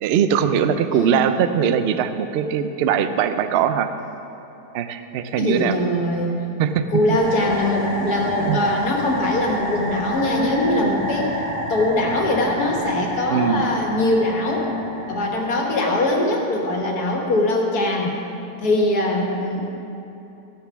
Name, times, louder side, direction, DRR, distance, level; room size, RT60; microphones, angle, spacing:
voice 1, 0.0-3.9 4.7-5.8 6.6-6.9 8.5-8.6 13.3-13.7, right 8 dB, 75° right, 10 dB, 0.5 m, -21 dB
voice 2, 0.9-1.3 5.4-6.4 6.9-11.4 11.7-14.7 15.1-18.1 18.6-19.7, left 1 dB, 70° left, 0 dB, 1.9 m, -22 dB
sound 1, 7.2-16.0, equal, 40° right, 2.2 m, -29 dB
14.5 x 6.8 x 6.1 m, 2.9 s
omnidirectional pair, 1.7 m